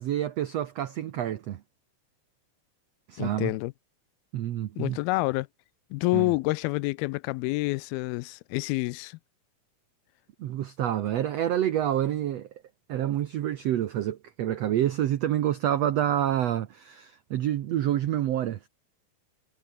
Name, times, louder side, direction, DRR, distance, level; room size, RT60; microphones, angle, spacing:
voice 1, 0.0-1.6 3.1-3.5 4.3-5.0 6.1-6.3 10.4-12.5 12.9-18.7, right 11 dB, 85° right, 1.4 m, -28 dB
voice 2, 3.2-3.7 4.8-5.5 5.9-9.2, left 22 dB, 85° left, 2.4 m, -28 dB
omnidirectional pair, 4.4 m